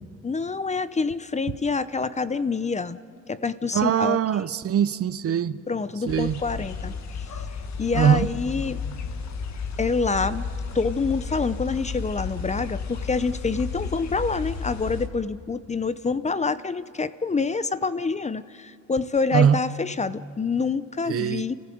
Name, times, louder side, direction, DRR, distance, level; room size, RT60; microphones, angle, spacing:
voice 1, 0.2-3.0 3.3-4.2 5.7-6.9 7.8-8.8 9.8-10.5 10.7-21.5, left 4 dB, 25° left, 0.7 m, -26 dB
voice 2, 3.7-5.6 6.1-6.4 7.9-8.3 19.3-19.6 21.1-21.4, right 8 dB, 50° right, 0.7 m, -22 dB
sound 1, 6.1-15.1, left 5 dB, 65° left, 1.7 m, -33 dB
29.5 x 15.0 x 7.8 m
cardioid pair, 90°, 30 cm